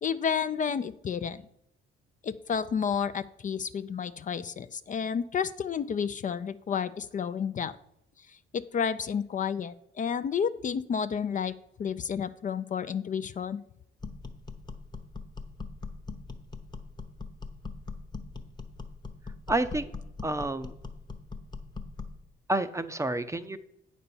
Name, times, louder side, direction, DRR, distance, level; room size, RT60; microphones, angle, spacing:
voice 1, 0.0-1.4 2.2-7.8 8.3-11.5 11.8-13.6, left 7 dB, 40° left, 12 dB, 0.4 m, -31 dB
sound 1, 14.0-22.2, left 4 dB, 20° left, 0.9 m, -41 dB
voice 2, 19.5-19.9 20.2-20.7 22.5-23.6, right 2 dB, 15° right, 11 dB, 0.6 m, -29 dB
8.6 x 4.2 x 6.9 m, 0.79 s
cardioid pair, 90°, 20 cm